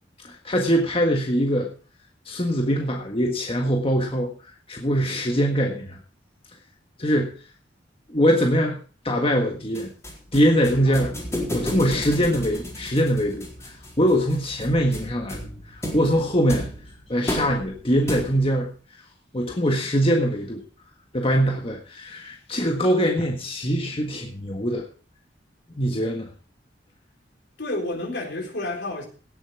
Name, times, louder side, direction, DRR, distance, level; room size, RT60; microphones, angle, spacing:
voice 1, 0.2-1.7 2.2-4.3 4.7-6.0 7.0-7.3 8.1-8.8 9.0-9.9 10.3-11.1 11.5-15.4 15.7-16.7 17.1-18.7 19.3-20.6 21.1-24.8 25.7-26.3, equal, 30° left, 1 dB, 1.6 m, -22 dB
sound 1, 9.7-18.6, equal, 15° left, 4.2 m, -33 dB
voice 2, 27.6-29.1, left 2 dB, 70° left, 3 dB, 4.1 m, -30 dB
17.5 x 7.9 x 4.8 m, 0.38 s
head